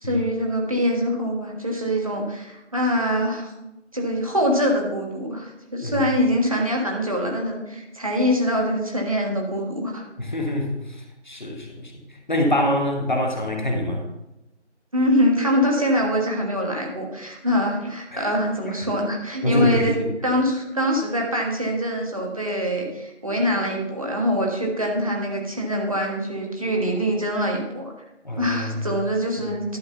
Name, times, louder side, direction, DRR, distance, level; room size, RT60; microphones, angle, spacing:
voice 1, 0.0-3.5 3.9-10.0 14.9-27.9 28.4-29.8, equal, 30° right, -1 dB, 1.4 m, -24 dB
voice 2, 10.2-14.0 18.1-18.3 19.4-20.1 28.2-28.8 29.4-29.5, left 1 dB, 40° left, 1 dB, 1.3 m, -25 dB
11.5 x 3.9 x 6.7 m, 0.96 s
figure-of-eight pair, 170°, 35 cm